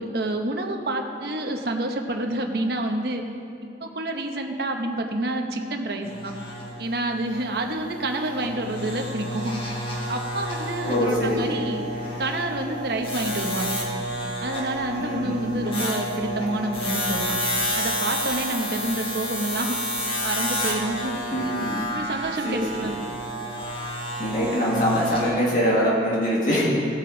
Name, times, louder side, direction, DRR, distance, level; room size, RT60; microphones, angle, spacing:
voice 1, 0.0-3.2 3.8-6.3 6.8-9.5 10.1-11.8 12.2-13.8 14.4-17.4 17.7-19.8 20.2-21.2 21.9-23.0, right 1 dB, 60° right, 3 dB, 1.0 m, -28 dB
sound 1, 6.0-25.3, equal, 30° left, 2.0 m, -30 dB
voice 2, 10.8-11.6 15.0-15.4 21.3-21.8 22.4-22.9 24.2-26.7, equal, 45° left, -5 dB, 2.1 m, -23 dB
17.0 x 8.2 x 4.0 m, 2.6 s
head